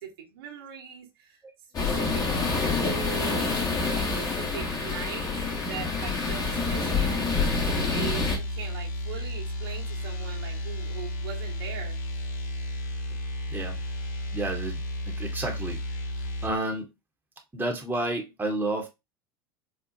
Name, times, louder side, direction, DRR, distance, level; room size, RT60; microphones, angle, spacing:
voice 1, 0.0-1.4 1.8-3.5 3.8-5.3 5.6-7.2 7.6-12.0, right 8 dB, 75° right, 1.3 m, -40 dB
sound 1, 1.7-8.4, left 4 dB, 30° left, 1.6 m, -27 dB
sound 2, 7.5-16.5, equal, 65° left, 1.1 m, -33 dB
voice 2, 14.3-14.8 15.1-15.8 16.4-16.9 17.5-18.9, right 2 dB, 15° right, 1.1 m, -30 dB
4.3 x 2.3 x 2.8 m
hypercardioid pair, 85°, 12 cm